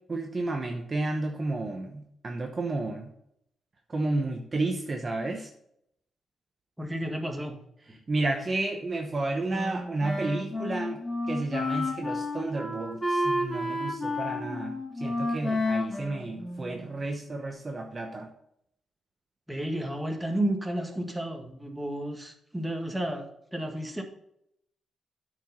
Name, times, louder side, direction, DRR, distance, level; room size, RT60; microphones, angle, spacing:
voice 1, 0.1-3.1 3.9-5.5 8.1-11.0 11.3-14.7 15.0-18.3, right 2 dB, 35° right, 3 dB, 0.9 m, -31 dB
voice 2, 6.8-7.6 7.9-8.0 19.5-23.3 23.5-24.0, right 1 dB, 10° right, 3 dB, 1.6 m, -32 dB
Wind instrument woodwind instrument, 9.5-17.0, left 1 dB, 20° left, 3.1 m, -31 dB
8.7 x 4.9 x 5.5 m, 0.74 s
cardioid pair, 90°, 0 cm